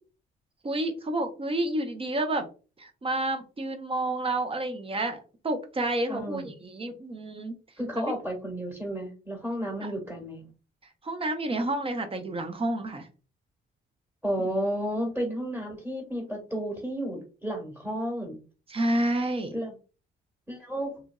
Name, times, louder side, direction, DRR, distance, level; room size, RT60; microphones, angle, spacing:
voice 1, 0.6-2.5 2.8-7.5 8.0-8.1 11.0-13.1 18.7-19.5, right 1 dB, 30° right, 6 dB, 0.7 m, -29 dB
voice 2, 6.1-6.5 7.8-10.4 14.2-18.4 19.5-19.8 20.5-21.0, equal, 5° right, -2 dB, 1.3 m, -32 dB
3.0 x 2.5 x 2.2 m, 0.34 s
cardioid pair, 90°, 20 cm